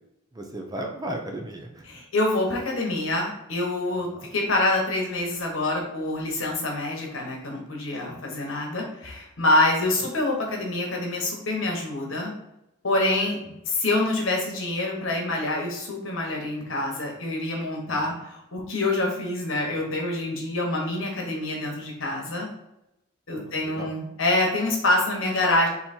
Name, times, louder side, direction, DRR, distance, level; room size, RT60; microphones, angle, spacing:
voice 1, 0.3-1.9 4.0-4.3 8.1-8.2 10.0-10.1 13.4-13.5 17.9-18.2 23.3-23.9, right 1 dB, 20° right, 2 dB, 0.5 m, -36 dB
voice 2, 1.9-12.3 12.8-13.4 13.7-22.5 23.3-25.7, left 2 dB, 70° left, 0 dB, 1.2 m, -26 dB
3.8 x 2.9 x 4.3 m, 0.85 s
head